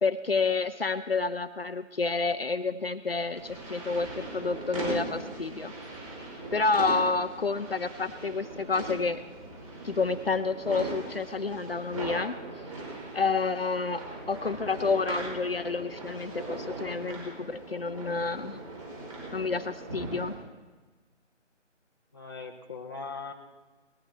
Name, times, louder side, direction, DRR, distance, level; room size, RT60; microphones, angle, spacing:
voice 1, 0.0-5.7 6.5-9.2 9.8-12.4 13.1-18.6 19.3-20.3, left 4 dB, 50° left, 11 dB, 0.8 m, -29 dB
sound 1, 3.3-20.3, right 2 dB, 25° right, 4.8 m, -39 dB
voice 2, 22.1-23.3, left 4 dB, 20° left, 1 dB, 0.8 m, -39 dB
19.0 x 14.0 x 4.4 m, 1.3 s
figure-of-eight pair, 155°, 37 cm